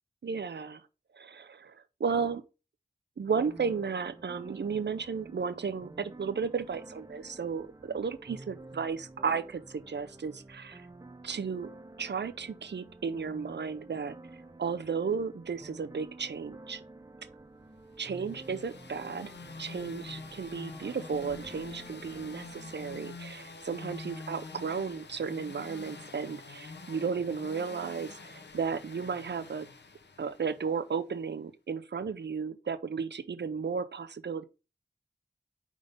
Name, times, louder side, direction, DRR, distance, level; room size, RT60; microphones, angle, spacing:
voice 1, 0.2-0.8 1.1-2.4 3.2-10.9 11.2-11.7 12.0-14.2 14.6-16.8 18.0-19.3 19.6-29.7 30.2-34.4, right 5 dB, 80° right, 0.6 m, -34 dB
sound 1, 3.4-23.0, right 2 dB, 20° right, 0.5 m, -50 dB
sound 2, 18.0-30.9, left 3 dB, 80° left, 0.8 m, -46 dB
5.1 x 3.7 x 5.4 m
wide cardioid pair, 65°, 18 cm